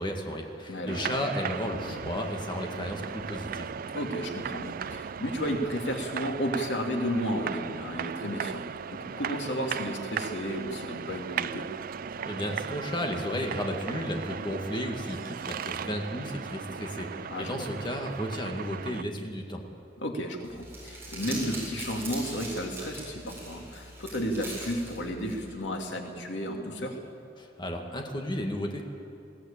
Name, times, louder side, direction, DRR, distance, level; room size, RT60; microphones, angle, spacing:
voice 1, 0.0-3.7 12.3-19.6 27.4-28.8, equal, 25° left, 2 dB, 2.0 m, -33 dB
voice 2, 0.7-1.1 3.9-8.6 8.9-11.7 17.3-17.7 20.0-27.0, equal, 85° left, 2 dB, 2.6 m, -33 dB
sound 1, 0.9-19.0, right 7 dB, 50° right, 0.4 m, -37 dB
Crumpling crinkling, 20.4-25.5, right 2 dB, 15° right, 7.4 m, -41 dB
21.0 x 17.0 x 8.8 m, 2.6 s
head